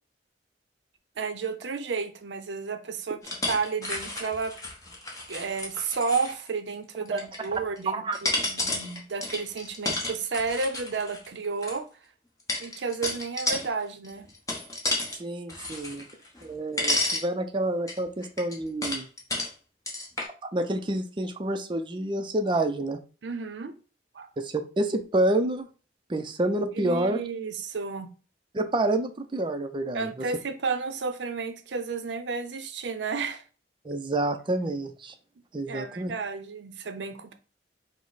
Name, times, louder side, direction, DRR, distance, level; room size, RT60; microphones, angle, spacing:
voice 1, 1.2-4.6 5.3-11.9 12.6-14.3 23.2-23.7 24.1-24.3 26.7-28.1 29.9-33.4 35.6-37.3, right 4 dB, 80° right, 0.6 m, -32 dB
sound 1, 3.2-6.5 7.1-7.8 8.1-11.8 12.5-13.7 14.0-15.2 15.5-16.5 16.8-17.3 17.9-19.5 19.9-20.3, left 2 dB, 20° left, 0.9 m, -31 dB
voice 2, 7.9-8.2 15.2-16.0 16.4-19.1 20.4-23.0 24.4-25.7 26.1-27.2 28.5-30.1 33.8-35.1 35.5-36.1, right 1 dB, 25° right, 0.4 m, -28 dB
5.0 x 2.1 x 3.9 m
head